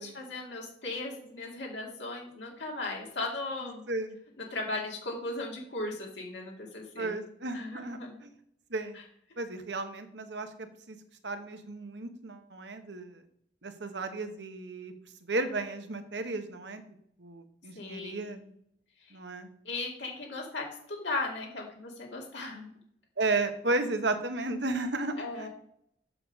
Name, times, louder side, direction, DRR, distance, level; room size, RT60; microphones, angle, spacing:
voice 1, 0.0-3.8 4.4-7.2 7.5-8.2 17.7-18.5 19.0-19.1 19.6-22.7 25.2-25.5, left 2 dB, 90° left, -1 dB, 2.5 m, -37 dB
voice 2, 3.6-4.2 7.0-8.3 8.7-9.0 9.4-11.0 11.2-13.2 13.6-14.9 15.3-16.8 17.2-18.4 19.1-19.5 23.2-25.5, right 2 dB, 75° right, 8 dB, 1.1 m, -34 dB
7.6 x 6.4 x 5.3 m, 0.69 s
head